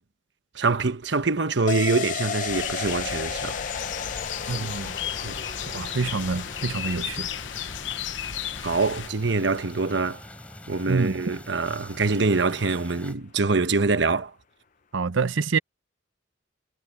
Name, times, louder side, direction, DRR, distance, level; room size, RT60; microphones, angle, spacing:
voice 1, 0.5-3.6 4.5-4.7 5.2-5.4 8.6-10.2 10.7-14.3, right 3 dB, 60° right, 1.1 m, -25 dB
sound 1, 1.7-11.1 11.4-11.5, left 6 dB, 40° left, 0.6 m, -35 dB
sound 2, 2.5-9.1, left 9 dB, 70° left, 0.9 m, -34 dB
sound 3, 3.7-13.1, left 1 dB, 5° left, 5.2 m, -45 dB
voice 2, 4.5-4.9 5.7-7.3 10.9-11.2 14.9-15.6, right 4 dB, 80° right, 0.8 m, -26 dB
head